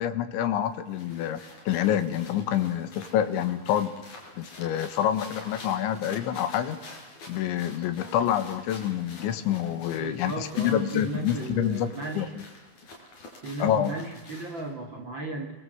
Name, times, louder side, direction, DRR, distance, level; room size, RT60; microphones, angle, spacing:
voice 1, 0.0-1.4 1.7-3.9 4.4-6.8 7.3-11.9 12.2-12.3 13.6-13.9, left 10 dB, 80° left, 11 dB, 3.8 m, -27 dB
sound 1, 0.6-14.7, left 2 dB, 40° left, 6.3 m, -47 dB
voice 2, 10.0-12.3 13.4-15.5, right 2 dB, 35° right, 3 dB, 2.1 m, -35 dB
28.5 x 22.5 x 7.9 m, 1.2 s
omnidirectional pair, 5.4 m